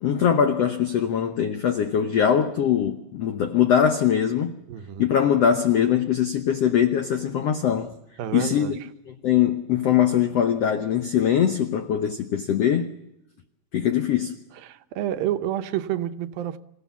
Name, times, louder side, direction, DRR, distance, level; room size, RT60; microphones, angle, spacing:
voice 1, 0.0-4.5 5.0-7.9 8.3-8.7 9.1-12.9 13.7-14.3, left 9 dB, 85° left, 1.3 m, -22 dB
voice 2, 4.7-5.1 8.2-8.8 14.6-16.6, right 11 dB, 75° right, 2.6 m, -29 dB
27.5 x 16.5 x 7.2 m
omnidirectional pair, 4.4 m